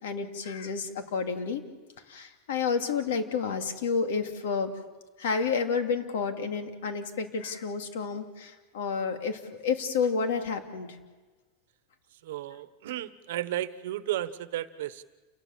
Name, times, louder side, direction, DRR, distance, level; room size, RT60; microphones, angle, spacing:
voice 1, 0.0-1.6 2.1-4.7 5.2-11.0, left 5 dB, 85° left, 5 dB, 2.6 m, -30 dB
voice 2, 12.2-15.0, right 13 dB, 65° right, 13 dB, 1.1 m, -33 dB
29.0 x 19.0 x 7.4 m, 1.3 s
supercardioid pair, 180°, 0 cm